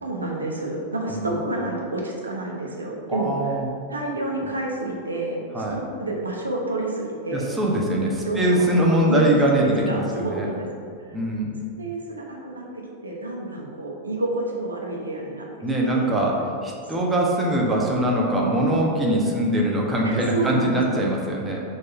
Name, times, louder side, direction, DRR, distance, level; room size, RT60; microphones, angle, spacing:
voice 1, 0.0-3.3 3.9-7.5 8.3-8.7 9.0-9.4 9.6-10.9 11.8-15.5 15.8-16.1 17.5-17.8 20.0-20.8, right 2 dB, 75° right, -1 dB, 0.9 m, -29 dB
voice 2, 3.1-3.7 5.5-5.7 7.3-10.5 11.1-11.5 15.6-21.6, right 1 dB, 15° right, -2 dB, 1.2 m, -22 dB
5.2 x 4.1 x 5.8 m, 2.5 s
figure-of-eight pair, 90°, 0 cm